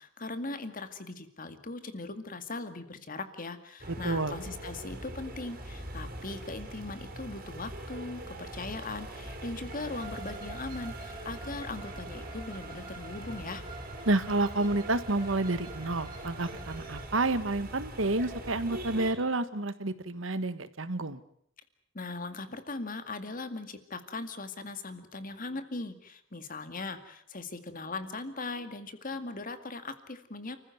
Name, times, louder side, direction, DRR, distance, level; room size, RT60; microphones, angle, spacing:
voice 1, 0.0-13.6 21.9-30.6, left 3 dB, 40° left, 10 dB, 2.2 m, -39 dB
sound 1, 3.8-19.1, right 1 dB, 45° right, 5.0 m, -42 dB
voice 2, 3.9-4.4 14.0-21.2, right 2 dB, 65° right, 13 dB, 1.5 m, -29 dB
Bowed string instrument, 9.9-17.1, right 3 dB, 25° right, 4.8 m, -48 dB
29.5 x 15.0 x 9.3 m, 0.69 s
head